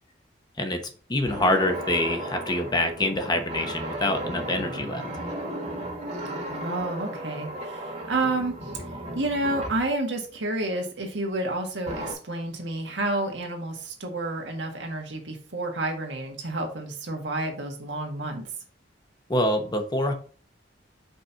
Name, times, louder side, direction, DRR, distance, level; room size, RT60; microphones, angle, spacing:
voice 1, 1.1-5.0 19.3-20.1, left 1 dB, 25° left, 5 dB, 0.9 m, -25 dB
sound 1, 1.3-9.9 11.9-12.1, right 1 dB, 40° right, 1.6 m, -35 dB
voice 2, 6.5-8.8 9.1-18.4, right 2 dB, 80° right, 2 dB, 1.6 m, -30 dB
5.3 x 4.3 x 4.4 m, 0.39 s
head